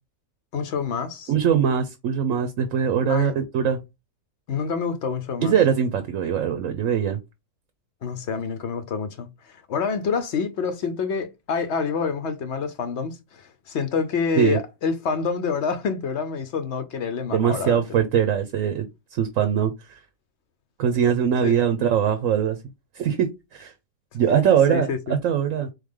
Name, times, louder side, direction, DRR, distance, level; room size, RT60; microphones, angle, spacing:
voice 1, 0.5-1.3 3.1-3.3 4.5-5.5 8.0-17.8 21.4-21.6 24.7-25.2, left 5 dB, 60° left, 0.9 m, -27 dB
voice 2, 1.3-3.8 5.4-7.2 14.4-14.6 17.3-20.0 20.8-22.6 22.9-23.7 24.1-25.7, right 8 dB, 70° right, 1.0 m, -22 dB
3.9 x 3.2 x 3.6 m
omnidirectional pair, 1.5 m